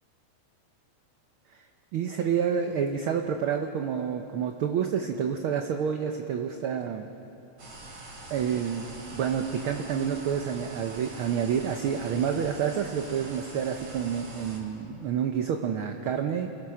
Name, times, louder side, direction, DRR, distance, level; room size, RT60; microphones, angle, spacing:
voice 1, 1.9-7.1 8.3-8.9 9.1-16.5, right 7 dB, 70° right, 5 dB, 1.3 m, -28 dB
sound 1, 7.6-14.6, right 2 dB, 55° right, 4.1 m, -44 dB
29.0 x 18.5 x 5.8 m, 3.0 s
omnidirectional pair, 3.4 m